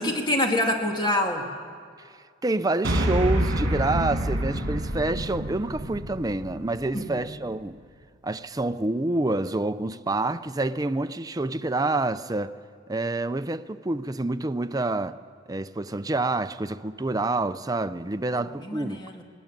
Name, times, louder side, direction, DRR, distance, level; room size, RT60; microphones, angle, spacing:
voice 1, 0.0-1.5 6.9-7.3 18.3-19.2, left 1 dB, 20° left, 2.3 m, -26 dB
voice 2, 2.4-7.8 8.2-12.5 12.9-15.2 15.5-19.0, right 2 dB, 20° right, 0.6 m, -27 dB
sound 1, 2.8-7.3, right 1 dB, 75° right, 2.4 m, -27 dB
19.5 x 19.0 x 9.2 m
head